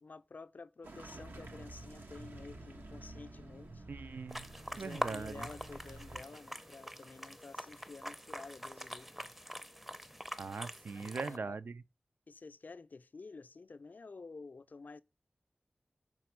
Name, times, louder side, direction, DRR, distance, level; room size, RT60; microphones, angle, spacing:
voice 1, 0.0-3.8 4.7-9.4 10.9-11.6 12.3-15.0, left 4 dB, 60° left, 0.4 m, -51 dB
Car passing by / Engine, 0.8-7.4, right 2 dB, 90° right, 1.1 m, -55 dB
sound 1, 1.2-6.2, right 1 dB, 40° right, 0.9 m, -52 dB
voice 2, 3.9-4.5 4.8-5.5 10.4-11.8, right 4 dB, 70° right, 0.4 m, -41 dB
sound 2, 4.3-11.4, equal, 5° right, 0.5 m, -44 dB
6.1 x 4.1 x 4.4 m
wide cardioid pair, 65°, 3 cm